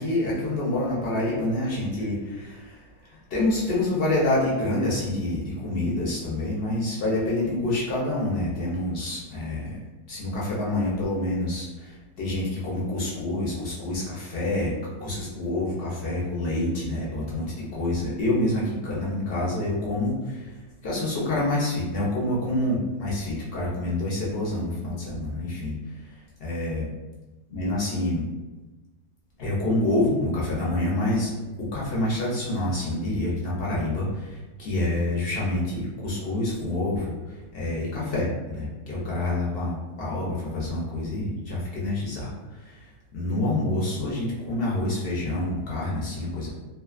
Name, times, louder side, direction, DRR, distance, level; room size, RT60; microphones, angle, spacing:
voice 1, 0.0-9.8 10.1-25.8 26.0-26.8 27.5-28.2 29.4-42.9 43.1-46.5, left 1 dB, 55° left, -6 dB, 0.6 m, -27 dB
2.7 x 2.2 x 2.3 m, 1.2 s
omnidirectional pair, 1.6 m